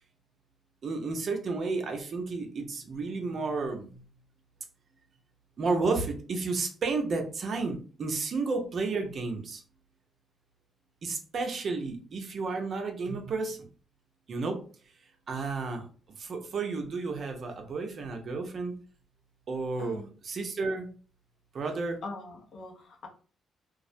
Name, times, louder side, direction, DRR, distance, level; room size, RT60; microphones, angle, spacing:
voice 1, 0.8-4.0 5.6-9.6 11.0-13.7 14.3-14.6 15.3-15.9 16.2-18.7 19.5-20.0 20.2-20.9 21.5-22.0, right 3 dB, 50° right, 4 dB, 0.6 m, -32 dB
voice 2, 19.8-20.1 22.0-23.1, left 3 dB, 60° left, 1 dB, 0.7 m, -42 dB
2.3 x 2.0 x 2.6 m, 0.40 s
cardioid pair, 90°, 0 cm